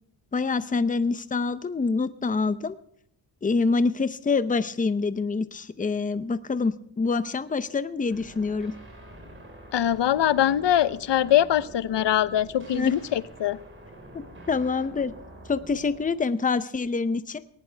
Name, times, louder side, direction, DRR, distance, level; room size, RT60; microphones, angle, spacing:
voice 1, 0.3-2.8 3.4-8.7 12.7-12.9 14.5-15.1 15.5-17.4, left 4 dB, 20° left, 13 dB, 0.7 m, -26 dB
sound 1, 8.1-16.1, right 1 dB, 30° right, 4.6 m, -46 dB
voice 2, 9.7-13.6, left 11 dB, 80° left, 16 dB, 0.8 m, -23 dB
18.5 x 18.5 x 3.4 m, 0.68 s
wide cardioid pair, 170°, 42 cm